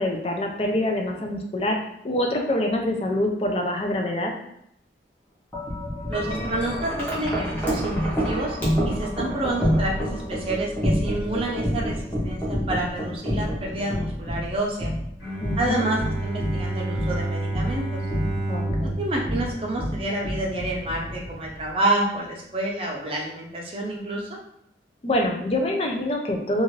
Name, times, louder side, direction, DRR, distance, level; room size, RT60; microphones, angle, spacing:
voice 1, 0.0-1.8 2.0-4.3 15.4-15.9 18.5-19.0 25.0-26.6, left 1 dB, 30° left, 2 dB, 0.4 m, -25 dB
Wind chime, 5.5-21.7, equal, 10° left, 0.8 m, -28 dB
voice 2, 6.1-8.6 8.8-12.0 12.2-14.9 15.6-18.0 18.8-24.4, right 1 dB, 30° right, -1 dB, 0.5 m, -28 dB
Bowed string instrument, 15.2-20.5, right 2 dB, 65° left, 1.1 m, -30 dB
2.5 x 2.4 x 3.1 m, 0.77 s
head